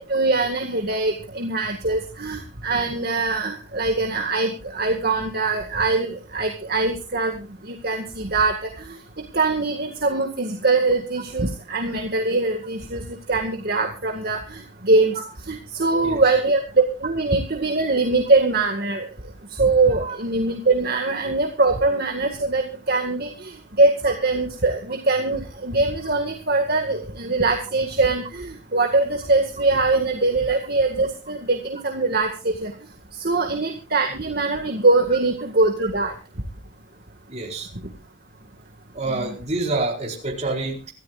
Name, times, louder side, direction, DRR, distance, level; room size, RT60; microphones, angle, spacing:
voice 1, 0.1-7.3 7.7-8.5 9.3-13.0 13.3-15.1 15.5-16.6 17.0-19.1 19.6-32.7 33.2-36.1 39.1-39.3, right 3 dB, 50° right, 3 dB, 1.9 m, -22 dB
voice 2, 37.3-37.7 38.9-40.9, right 2 dB, 30° right, 0 dB, 4.6 m, -27 dB
25.5 x 14.0 x 2.5 m, 0.33 s
head